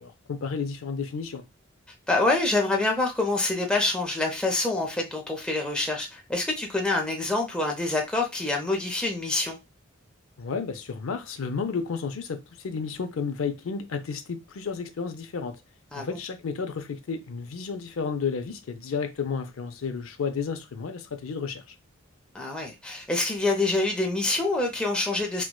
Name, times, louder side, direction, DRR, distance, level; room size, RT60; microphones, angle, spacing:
voice 1, 0.0-1.4 10.4-15.5 16.0-21.7, left 5 dB, 80° left, 0.5 m, -32 dB
voice 2, 2.1-9.6 15.9-16.2 22.3-25.4, left 2 dB, 5° left, 0.5 m, -26 dB
4.5 x 2.2 x 2.2 m
head